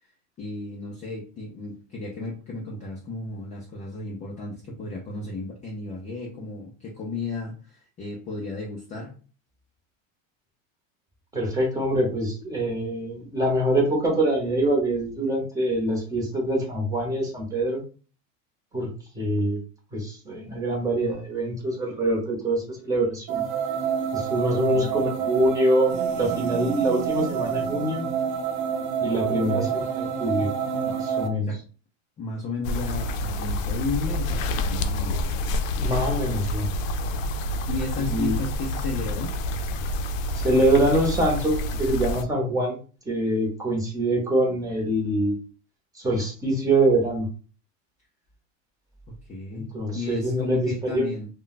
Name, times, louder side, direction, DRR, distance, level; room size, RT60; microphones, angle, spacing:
voice 1, 0.4-9.1 24.7-25.0 29.4-29.8 31.4-31.6 32.2-35.2 37.7-39.3 49.2-51.3, left 3 dB, 20° left, -2 dB, 0.4 m, -34 dB
voice 2, 11.3-17.8 18.7-19.6 19.9-23.4 24.1-28.0 29.0-30.5 30.8-31.5 35.8-36.7 38.1-38.3 40.3-42.8 43.1-45.3 45.9-47.3 49.5-51.1, right 1 dB, 10° right, -1 dB, 0.8 m, -24 dB
sound 1, 23.3-31.3, right 7 dB, 65° right, 0.7 m, -27 dB
sound 2, 32.6-42.2, left 1 dB, 80° left, 0.5 m, -28 dB
2.2 x 2.2 x 3.9 m, 0.37 s
supercardioid pair, 150°, 39 cm